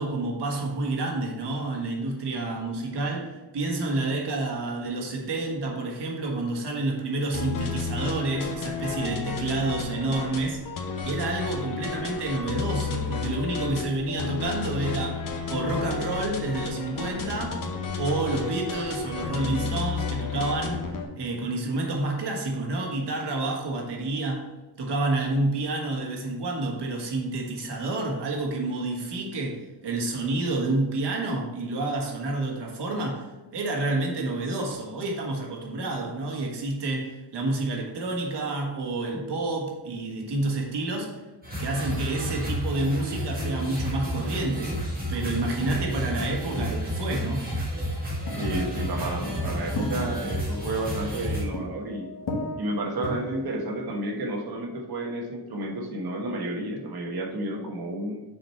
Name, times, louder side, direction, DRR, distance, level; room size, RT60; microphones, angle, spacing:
voice 1, 0.0-10.6 11.0-15.2 15.5-17.6 18.0-20.8 21.2-24.4 24.8-41.2 41.6-44.7 45.1-47.6, right 2 dB, 85° right, 0 dB, 1.5 m, -29 dB
sound 1, 7.3-21.0, left 5 dB, 55° left, 1.0 m, -32 dB
sound 2, 41.4-51.4, equal, 20° right, 1.7 m, -31 dB
sound 3, 48.2-54.5, left 2 dB, 80° left, 1.3 m, -36 dB
voice 2, 48.3-52.1 52.6-58.2, right 1 dB, 65° right, 1 dB, 1.3 m, -31 dB
6.3 x 4.5 x 4.4 m, 1.1 s
wide cardioid pair, 160°, 40 cm